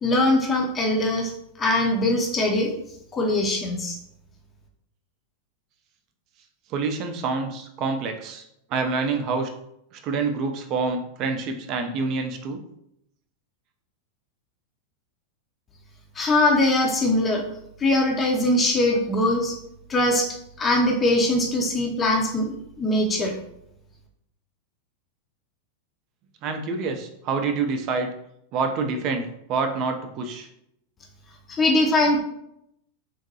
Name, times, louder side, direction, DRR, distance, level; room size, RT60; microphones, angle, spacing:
voice 1, 0.0-1.3 1.6-2.7 3.1-4.0 16.2-17.4 17.8-19.5 19.9-20.3 20.6-23.4 31.6-32.2, left 1 dB, 20° left, 0 dB, 0.6 m, -21 dB
voice 2, 6.7-8.4 8.7-9.5 9.9-12.6 26.4-28.1 28.5-30.5, right 4 dB, 40° right, 5 dB, 0.5 m, -27 dB
3.9 x 2.1 x 2.8 m, 0.77 s
figure-of-eight pair, 90°, 0 cm